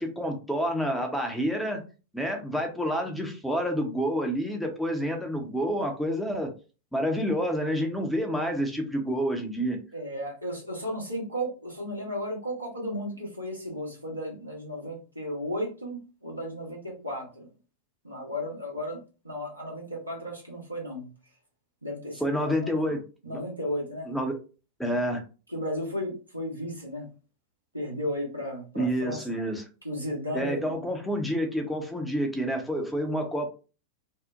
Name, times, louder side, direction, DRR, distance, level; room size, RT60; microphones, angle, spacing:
voice 1, 0.0-1.8 2.1-6.5 6.9-9.8 22.2-23.4 24.1-24.4 24.8-25.2 28.8-29.6 30.3-33.5, equal, ahead, 3 dB, 0.6 m, -28 dB
voice 2, 9.9-17.5 18.0-19.0 19.2-21.1 21.8-22.9 23.2-24.1 25.5-27.1 27.7-29.3 29.8-30.8, equal, 85° right, -3 dB, 1.0 m, -34 dB
2.7 x 2.0 x 2.3 m, 0.33 s
figure-of-eight pair, 90°, 0 cm